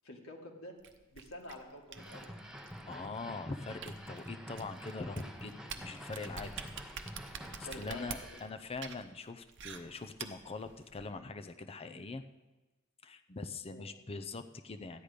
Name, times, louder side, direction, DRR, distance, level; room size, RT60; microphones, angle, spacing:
voice 1, 0.0-0.7 1.1-2.3 7.4-8.1 13.7-13.9, left 1 dB, 75° left, 0 dB, 2.0 m, -48 dB
sound 1, 0.8-11.1, right 6 dB, 60° right, 0.9 m, -47 dB
sound 2, 1.9-8.5, equal, 5° right, 0.8 m, -48 dB
voice 2, 2.8-6.5 7.7-12.3 13.0-15.0, left 3 dB, 30° left, 8 dB, 0.6 m, -43 dB
13.5 x 9.9 x 5.1 m, 1.2 s
head